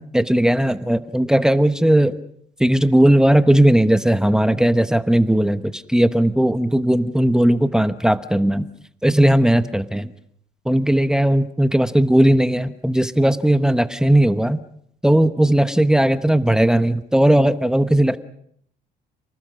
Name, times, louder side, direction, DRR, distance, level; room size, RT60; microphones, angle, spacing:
voice 1, 0.0-2.1 2.6-8.7 9.0-10.1 10.6-14.6 15.0-18.2, right 1 dB, 5° right, 11 dB, 1.0 m, -17 dB
30.0 x 19.5 x 6.3 m, 0.68 s
cardioid pair, 110°, 17 cm